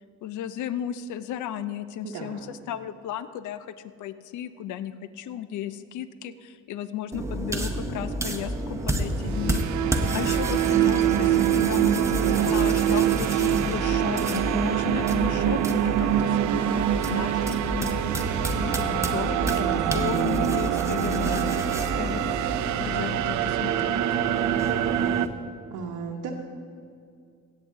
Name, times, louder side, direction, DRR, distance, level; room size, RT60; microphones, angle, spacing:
voice 1, 0.2-3.7 4.0-9.9 10.1-21.6 22.0-22.4 22.8-24.0, left 10 dB, 75° left, 14 dB, 0.5 m, -34 dB
voice 2, 2.0-2.5 12.3-12.6 19.6-20.0 25.7-26.3, right 5 dB, 85° right, -2 dB, 1.0 m, -35 dB
sound 1, 7.1-25.3, right 1 dB, 10° right, 0.9 m, -31 dB
sound 2, 9.0-25.3, right 11 dB, 70° right, 0.5 m, -25 dB
16.5 x 8.1 x 3.7 m, 2.3 s
cardioid pair, 90°, 30 cm